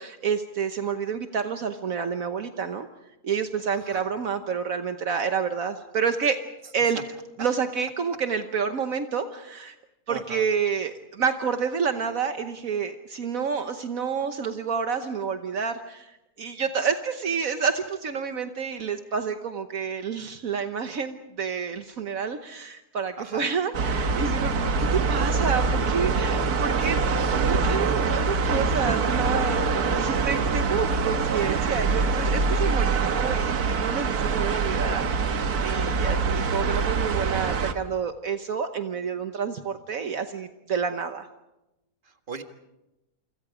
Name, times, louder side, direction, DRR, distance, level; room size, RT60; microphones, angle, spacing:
voice 1, 0.0-2.9 3.2-6.4 6.7-7.0 7.4-9.7 10.1-27.0 27.5-29.6 29.9-41.3, right 6 dB, 65° right, 8 dB, 1.4 m, -29 dB
voice 2, 10.1-10.4 23.2-23.4 26.8-26.9 27.4-27.6 28.1-28.2 42.0-42.4, right 5 dB, 35° right, 6 dB, 1.8 m, -38 dB
sound 1, 23.7-37.7, right 4 dB, 90° right, 1.8 m, -24 dB
28.5 x 25.5 x 5.0 m, 0.93 s
omnidirectional pair, 1.6 m